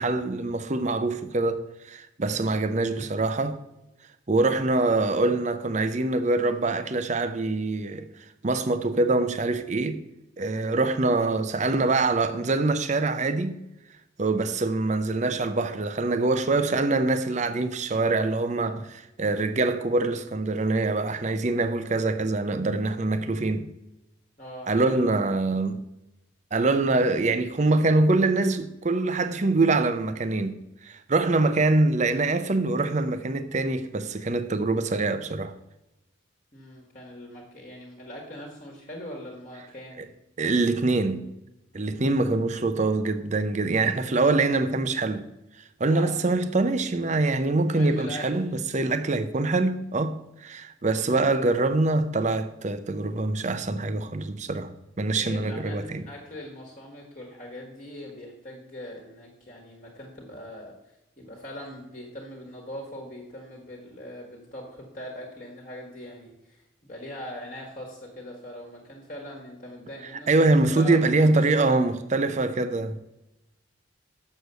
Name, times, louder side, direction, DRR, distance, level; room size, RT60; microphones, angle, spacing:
voice 1, 0.0-3.6 4.3-8.1 8.4-10.0 10.4-13.6 14.2-23.7 24.7-25.8 26.5-35.5 40.4-41.3 41.7-45.3 45.8-56.0 70.3-73.0, right 2 dB, 35° right, 0.6 m, -24 dB
voice 2, 24.4-25.2 36.5-40.0 41.9-42.3 45.9-46.2 47.7-48.5 55.2-71.8, equal, 35° left, 1.5 m, -41 dB
6.6 x 6.3 x 6.7 m
head